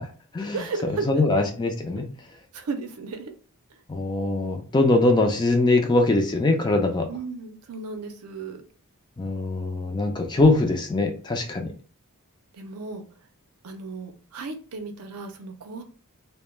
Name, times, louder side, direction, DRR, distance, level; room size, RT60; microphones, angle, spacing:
voice 1, 0.5-1.2 2.5-3.3 7.1-8.6 12.5-13.0 13.6-15.8, right 4 dB, 80° right, 6 dB, 0.5 m, -34 dB
voice 2, 1.1-2.1 3.9-7.1 9.2-11.7, left 2 dB, 20° left, 3 dB, 0.3 m, -22 dB
2.2 x 2.1 x 3.1 m, 0.41 s
head